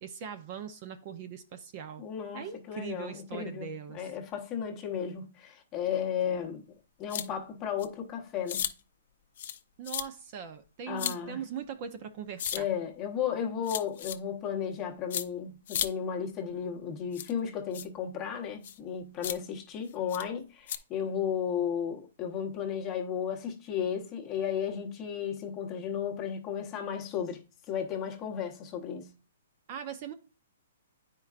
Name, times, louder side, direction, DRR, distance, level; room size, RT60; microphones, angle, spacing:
voice 1, 0.0-2.0 2.3-4.1 9.8-12.7 29.7-30.1, right 8 dB, 30° right, 0.5 m, -40 dB
voice 2, 2.0-6.6 7.0-8.7 10.9-11.4 12.5-27.4 27.7-29.1, left 8 dB, 20° left, 0.9 m, -34 dB
sound 1, 7.1-7.3 7.8-7.9 8.5-8.7 9.4-9.6 9.8-10.0 11.0-11.2 12.4-12.6 13.6-14.2 15.1-15.2 15.7-15.9 17.1-17.3 17.7-17.9 18.6-18.8 19.2-19.4 20.1-20.2 20.7-20.8, left 10 dB, 50° left, 0.5 m, -33 dB
9.7 x 4.5 x 2.4 m
hypercardioid pair, 165°, 0 cm